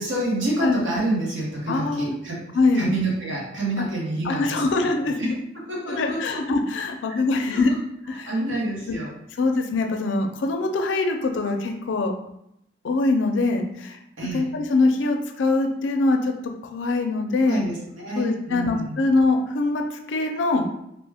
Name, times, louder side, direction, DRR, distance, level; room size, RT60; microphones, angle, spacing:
voice 1, 0.0-2.4 2.7-4.6 5.1-6.4 7.1-7.2 7.5-7.6 8.1-9.1 14.2-14.5 17.4-19.0, right 2 dB, 90° right, -5 dB, 1.1 m, -28 dB
voice 2, 1.7-2.1 2.5-2.9 3.8-3.9 4.2-5.4 5.9-7.8 8.1-8.3 9.4-12.1 12.8-14.0 14.3-16.3 16.6-17.6 18.2-20.7, left 3 dB, 80° left, 4 dB, 0.4 m, -23 dB
2.9 x 2.2 x 3.4 m, 0.78 s
head